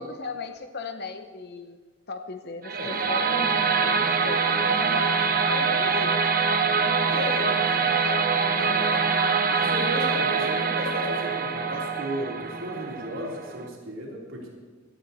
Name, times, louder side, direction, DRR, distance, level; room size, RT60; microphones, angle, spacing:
voice 1, 0.0-1.8 2.1-9.4, left 3 dB, 55° left, 7 dB, 0.9 m, -37 dB
sound 1, 2.6-13.7, right 5 dB, 45° right, 1.0 m, -24 dB
voice 2, 2.7-3.1 7.1-7.6 8.6-9.2 9.5-14.5, equal, 75° right, -3 dB, 3.3 m, -34 dB
17.5 x 12.0 x 4.2 m, 1.3 s
head